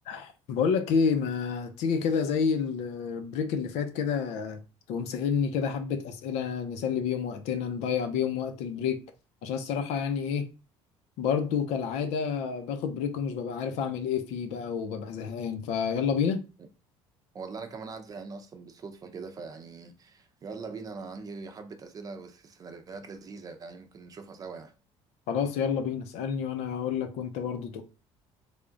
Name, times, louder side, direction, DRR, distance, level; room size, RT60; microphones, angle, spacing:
voice 1, 0.1-4.6 4.9-9.0 9.4-10.4 11.2-16.4 25.3-27.8, left 6 dB, 80° left, 0.7 m, -29 dB
voice 2, 17.3-24.7, right 4 dB, 30° right, 0.6 m, -42 dB
3.5 x 2.4 x 3.8 m
cardioid pair, 130°, 11 cm